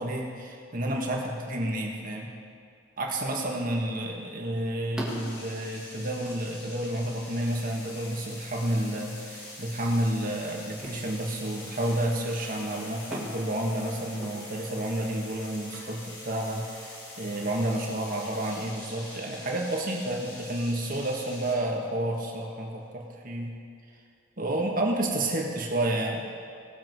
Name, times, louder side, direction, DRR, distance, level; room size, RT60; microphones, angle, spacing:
voice 1, 0.0-2.3 3.0-23.5 24.4-26.2, right 1 dB, 45° right, -1 dB, 1.6 m, -30 dB
sound 1, 3.9-15.0, right 1 dB, 5° right, 1.8 m, -45 dB
sound 2, 5.1-21.5, left 2 dB, 90° left, 3.5 m, -45 dB
19.0 x 7.4 x 4.7 m, 2.5 s
head